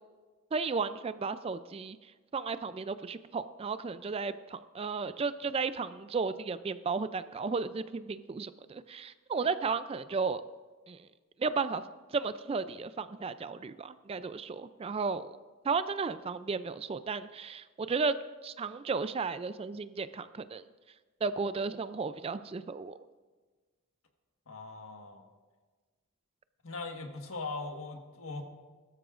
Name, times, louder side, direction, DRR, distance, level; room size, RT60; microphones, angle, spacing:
voice 1, 0.5-2.0 2.3-10.4 10.9-11.1 11.4-11.8 12.1-15.3 15.6-18.1 18.4-20.6 21.2-23.0, right 4 dB, 25° right, 13 dB, 0.3 m, -34 dB
voice 2, 24.5-25.2 26.6-28.4, left 3 dB, 75° left, 4 dB, 1.5 m, -40 dB
20.0 x 13.0 x 2.5 m, 1.4 s
head